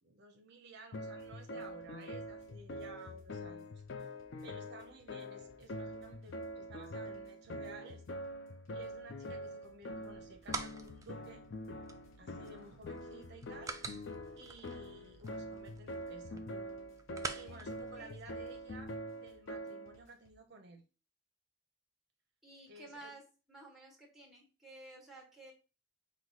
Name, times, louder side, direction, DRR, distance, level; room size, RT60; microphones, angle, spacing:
voice 1, 0.0-3.7 4.4-8.0 8.7-11.4 12.2-13.8 14.4-16.4 17.3-20.8 22.7-23.1, right 3 dB, 55° right, 4 dB, 0.6 m, -54 dB
sound 1, 0.9-20.0, equal, 60° left, 0.5 m, -45 dB
sound 2, 1.2-20.4, left 1 dB, 90° left, 0.9 m, -68 dB
sound 3, 9.9-18.8, right 4 dB, 15° right, 0.3 m, -48 dB
voice 2, 12.2-12.5 17.5-17.7 18.0-18.4 22.4-23.2 23.5-25.5, right 2 dB, ahead, 0 dB, 1.2 m, -54 dB
4.6 x 2.1 x 3.9 m, 0.32 s
head